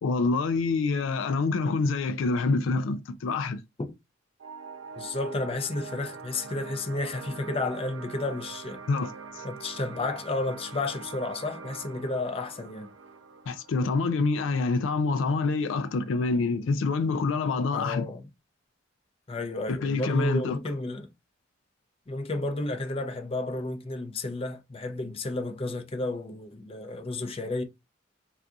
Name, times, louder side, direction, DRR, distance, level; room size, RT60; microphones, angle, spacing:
voice 1, 0.0-3.6 8.9-9.4 13.5-18.0 19.7-20.6, left 3 dB, 90° left, 0.4 m, -26 dB
sound 1, 4.4-15.5, right 5 dB, 85° right, 0.5 m, -44 dB
voice 2, 5.0-8.8 9.4-12.9 17.7-18.3 19.3-21.1 22.1-27.6, left 2 dB, 30° left, 0.5 m, -32 dB
2.7 x 2.4 x 3.5 m
head